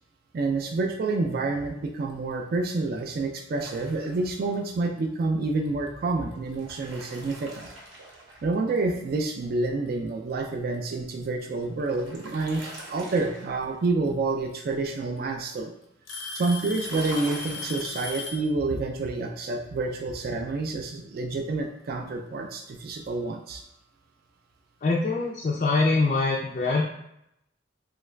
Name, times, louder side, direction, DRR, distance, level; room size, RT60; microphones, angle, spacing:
voice 1, 0.3-7.7 8.4-15.7 16.3-23.6, right 3 dB, 50° right, 3 dB, 0.3 m, -28 dB
sound 1, 3.6-4.5 6.3-8.7 11.4-13.7 16.7-17.9, right 2 dB, 70° right, 0.7 m, -43 dB
Alarm / Tick-tock, 4.5-4.8 5.7-5.8 6.5-6.6 8.3-8.4 9.6-9.7 11.0-11.4 13.2-13.3 14.5-14.6 15.0-15.4 16.1-18.5, left 3 dB, 80° left, 0.6 m, -37 dB
voice 2, 24.8-26.8, left 3 dB, 40° left, -2 dB, 0.3 m, -24 dB
3.0 x 2.4 x 3.1 m, 0.78 s
head